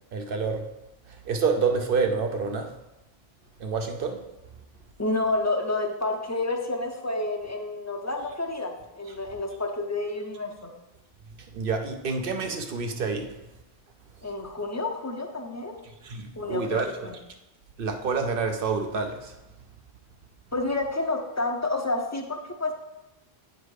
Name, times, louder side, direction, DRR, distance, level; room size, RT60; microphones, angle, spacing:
voice 1, 0.1-0.7 1.1-2.7 3.6-4.2 11.4-13.4 16.0-16.9 17.8-19.4, right 5 dB, 60° right, 0.9 m, -28 dB
voice 2, 5.0-10.7 14.2-15.8 16.4-17.1 20.5-22.7, left 2 dB, 20° left, 0.6 m, -29 dB
8.9 x 4.0 x 4.8 m
omnidirectional pair, 1.0 m